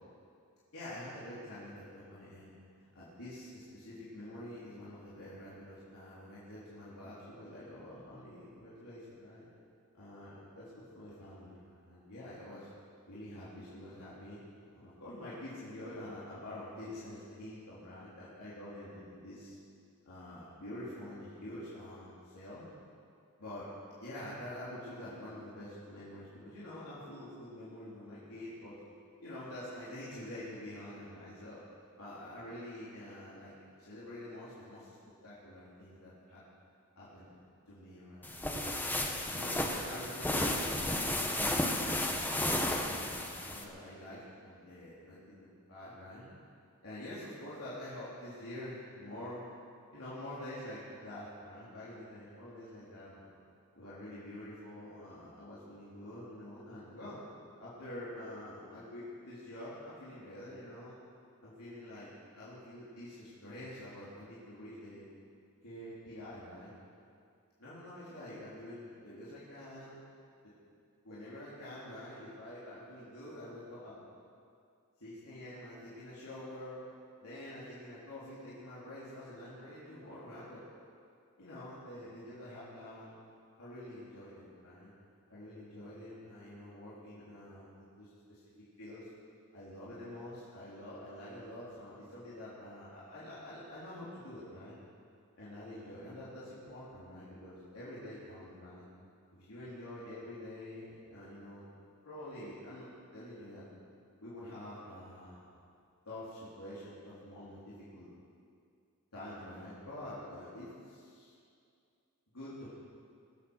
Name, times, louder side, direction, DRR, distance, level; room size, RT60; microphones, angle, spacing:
voice 1, 0.7-2.5 2.9-9.5 9.9-12.7 13.1-14.4 14.7-19.6 20.0-22.7 23.4-23.7 24.0-28.7 29.2-31.6 32.0-33.5 33.8-34.9 35.2-36.4 37.0-37.3 37.7-38.4 39.0-41.4 41.9-46.2 46.8-49.5 49.9-53.3 53.8-57.2 57.6-60.9 61.4-62.1 62.3-65.1 65.6-66.7 67.6-70.0 70.4-70.5 71.0-74.0 75.0-76.8 77.2-80.6 81.4-83.1 83.6-84.9 85.3-88.4 88.8-89.1 89.5-94.8 95.4-98.9 99.3-101.7 102.0-102.9 103.1-103.6 104.2-105.5 106.1-108.1 109.1-111.3 112.3-112.7, left 1 dB, 85° left, -10 dB, 3.9 m, -47 dB
sound 1, 38.2-43.6, left 1 dB, 10° left, 1.1 m, -33 dB
22.5 x 8.7 x 6.4 m, 2.4 s
head